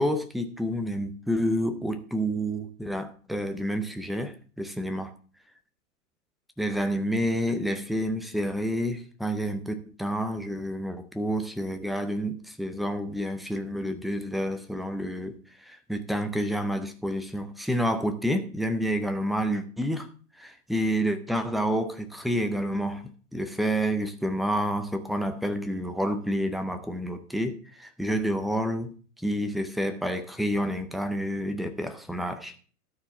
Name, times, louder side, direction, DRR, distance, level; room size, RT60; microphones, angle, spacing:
voice 1, 0.0-5.1 6.6-15.4 15.6-20.1 20.4-23.0 23.3-28.9 29.2-32.6, equal, ahead, 0.4 m, -29 dB
12.5 x 4.5 x 6.9 m
hypercardioid pair, 110°, 45 cm